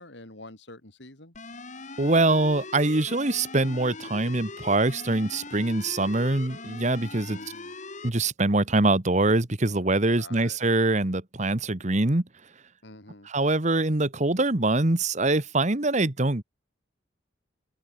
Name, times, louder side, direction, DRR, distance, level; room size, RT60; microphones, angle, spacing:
voice 1, 0.0-1.3 7.3-7.7 10.1-10.6 12.8-13.3, left 2 dB, 70° left, 4.9 m, -47 dB
sound 1, 1.3-8.1, left 3 dB, 40° left, 2.6 m, -41 dB
voice 2, 2.0-7.4 8.0-12.2 13.3-16.4, right 2 dB, 40° right, 1.5 m, -24 dB
open air
head